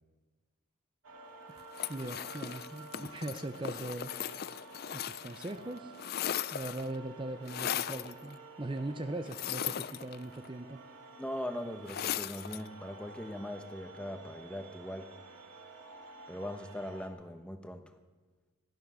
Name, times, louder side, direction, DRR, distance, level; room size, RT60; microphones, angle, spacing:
sound 1, 1.0-17.1, right 3 dB, 70° right, 2.4 m, -51 dB
sound 2, 1.7-5.5 5.8-6.9 7.5-8.1 9.3-10.5 11.9-12.7, left 10 dB, 45° left, 0.4 m, -37 dB
voice 1, 1.9-4.4 4.9-5.9 6.5-10.8, right 2 dB, 25° right, 8 dB, 0.6 m, -40 dB
voice 2, 11.2-15.1 16.3-17.8, left 1 dB, 5° left, 7 dB, 0.9 m, -40 dB
17.0 x 12.0 x 6.3 m, 1.3 s
head